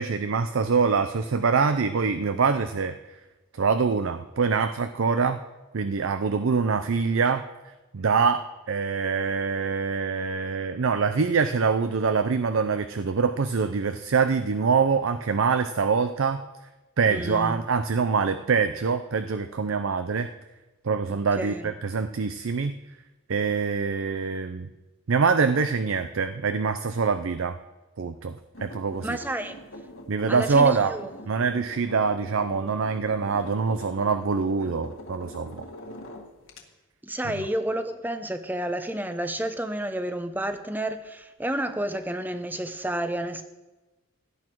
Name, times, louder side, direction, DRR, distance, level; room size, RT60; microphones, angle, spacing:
voice 1, 0.0-2.9 3.5-5.4 5.7-7.4 7.9-16.4 17.0-20.3 20.8-22.8 23.3-24.7 25.1-27.6 28.0-28.3 28.6-29.2 30.1-30.9 31.3-35.6 37.2-37.3, right 5 dB, 65° right, 10 dB, 0.5 m, -24 dB
voice 2, 17.1-17.5 21.4-21.7 29.0-29.6 30.3-31.1 37.0-43.4, right 1 dB, 10° right, 9 dB, 0.7 m, -30 dB
sound 1, 28.5-36.6, equal, 60° left, 1.7 m, -44 dB
17.0 x 10.5 x 4.6 m, 1.1 s
head